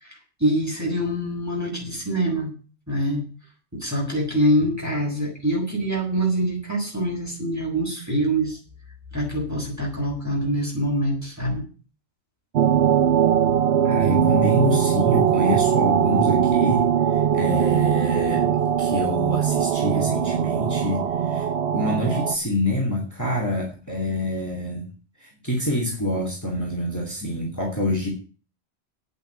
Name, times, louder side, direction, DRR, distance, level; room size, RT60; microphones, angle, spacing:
voice 1, 0.0-2.5 2.9-3.2 3.7-8.6 9.1-11.6, right 1 dB, 15° right, -2 dB, 6.3 m, -25 dB
sound 1, 12.5-22.4, right 9 dB, 65° right, 1.0 m, -21 dB
voice 2, 13.8-24.8 25.2-28.1, left 1 dB, 15° left, -1 dB, 3.1 m, -26 dB
9.4 x 8.7 x 9.3 m, 0.37 s
omnidirectional pair, 1.2 m